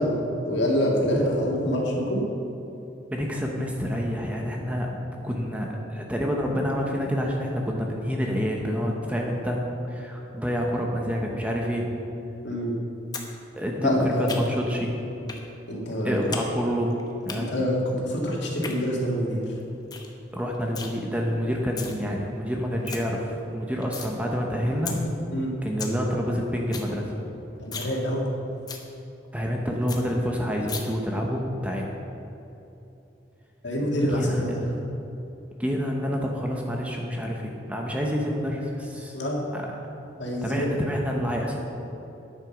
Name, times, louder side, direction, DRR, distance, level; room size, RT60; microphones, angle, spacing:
voice 1, 0.0-2.2 12.4-12.7 13.8-14.4 15.7-16.2 17.4-19.5 25.3-25.6 27.6-28.3 33.6-34.6 39.1-39.4 40.2-40.8, equal, 70° left, -3 dB, 2.2 m, -26 dB
voice 2, 3.1-5.0 5.2-9.6 9.9-11.9 13.5-14.9 16.0-16.9 17.3-17.6 20.3-25.0 25.6-27.1 29.3-31.9 34.0-34.4 35.6-39.2 39.5-39.6 40.4-41.6, equal, 5° right, 0 dB, 0.9 m, -28 dB
sound 1, 13.1-13.3 13.6-14.7 15.3-15.4 15.8-16.5 16.7-17.4 18.4-18.7 19.2-19.3 19.6-19.7 19.9-20.1 20.4-20.9 21.5-21.9 22.4-22.5 22.6-23.0 23.4-24.1 24.5-24.6 24.9-25.0 25.4-25.5 25.6-26.0 26.3-26.4 26.6-26.9 27.2-27.3 27.6-27.9 28.2-28.3 28.7-28.8 29.2-29.3 29.6-29.7 29.9-30.0 30.7-30.8, left 5 dB, 20° left, 0.8 m, -35 dB
9.3 x 8.8 x 5.9 m, 2.9 s
head